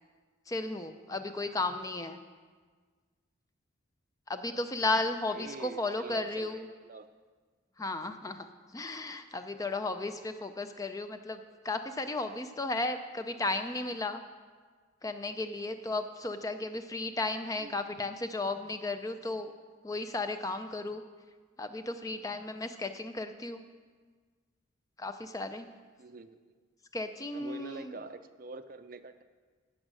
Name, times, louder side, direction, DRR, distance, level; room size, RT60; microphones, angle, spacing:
voice 1, 0.5-2.2 4.3-6.6 7.8-8.5 8.7-14.2 15.0-19.5 19.8-21.0 21.6-23.6 25.0-25.7 26.9-28.0, left 2 dB, 15° left, 8 dB, 0.4 m, -34 dB
voice 2, 5.3-7.1 17.6-17.8 26.0-26.4 27.3-29.2, right 3 dB, 40° right, 10 dB, 0.5 m, -45 dB
15.5 x 6.4 x 6.2 m, 1.5 s
head